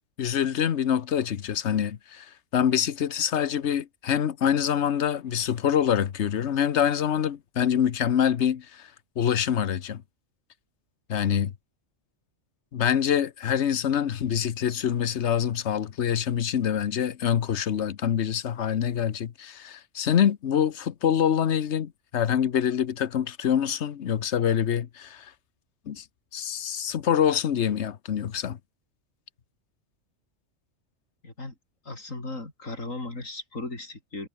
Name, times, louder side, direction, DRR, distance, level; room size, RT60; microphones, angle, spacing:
voice 1, 0.2-2.3 2.5-8.9 9.2-10.0 11.1-11.5 12.7-25.3 25.9-26.0 26.3-28.6, left 9 dB, 60° left, 1.2 m, -25 dB
voice 2, 31.2-31.5 31.8-34.3, left 2 dB, 80° left, 5.1 m, -36 dB
omnidirectional pair, 1.3 m